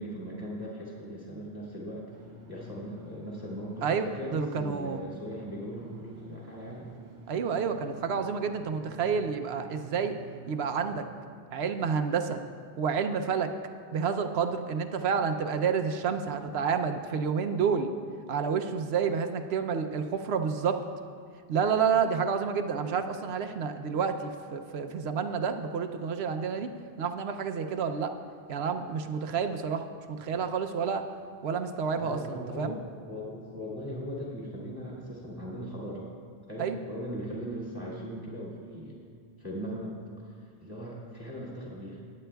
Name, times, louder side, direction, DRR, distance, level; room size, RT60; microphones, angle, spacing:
voice 1, 0.0-2.1 2.5-6.9 32.0-36.1 36.5-39.0 39.4-39.9 40.2-42.0, equal, 20° right, -7 dB, 2.0 m, -39 dB
sound 1, 2.1-10.9, equal, 90° right, 1.2 m, -49 dB
voice 2, 4.3-5.0 7.3-10.2 10.5-11.0 11.5-12.4 12.8-13.5 13.9-17.9 18.3-20.8 21.5-28.1 28.5-31.0 31.4-32.8 36.6-36.8, right 6 dB, 70° right, 7 dB, 0.9 m, -29 dB
19.0 x 9.5 x 2.3 m, 2.1 s
omnidirectional pair, 1.1 m